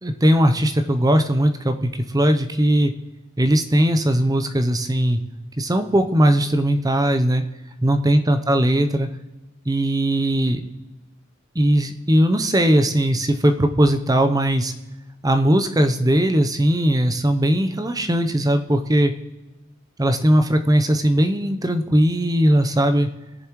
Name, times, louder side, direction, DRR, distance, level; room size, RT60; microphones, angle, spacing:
voice 1, 0.0-2.9 3.4-5.2 5.6-7.4 7.8-9.1 9.7-10.6 11.5-14.7 15.2-19.1 20.0-23.1, right 1 dB, 20° right, 7 dB, 0.7 m, -19 dB
21.0 x 7.2 x 3.1 m, 1.1 s
head